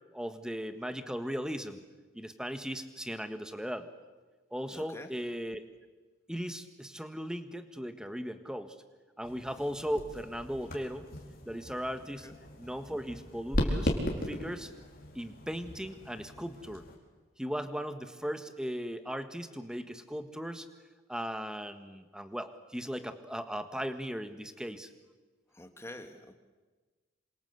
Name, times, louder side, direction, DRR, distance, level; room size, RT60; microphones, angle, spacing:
voice 1, 0.1-1.8 2.1-3.9 4.5-5.7 6.3-8.8 9.2-11.1 11.4-12.3 12.6-13.9 14.2-14.7 15.1-16.8 17.4-20.7 21.1-24.9, equal, 5° right, 9 dB, 1.6 m, -37 dB
voice 2, 4.7-5.1 12.2-12.4 25.6-26.4, left 1 dB, 15° left, 6 dB, 2.3 m, -46 dB
sound 1, 9.2-17.0, equal, 50° left, 4.6 m, -37 dB
27.5 x 26.5 x 8.2 m, 1.3 s
head